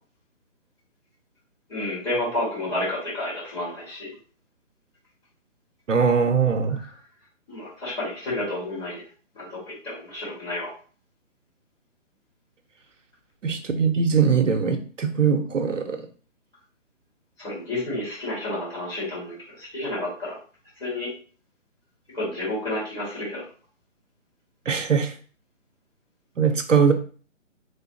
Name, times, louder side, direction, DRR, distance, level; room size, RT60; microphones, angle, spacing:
voice 1, 1.7-4.1 6.8-6.9 7.5-9.0 9.3-10.7 17.4-20.3 20.8-21.1 22.1-23.4, left 1 dB, 10° left, -9 dB, 1.7 m, -30 dB
voice 2, 5.9-6.8 13.4-16.1 24.7-25.1 26.4-26.9, right 6 dB, 75° right, 6 dB, 0.7 m, -21 dB
3.7 x 3.2 x 2.7 m, 0.41 s
figure-of-eight pair, 145°, 38 cm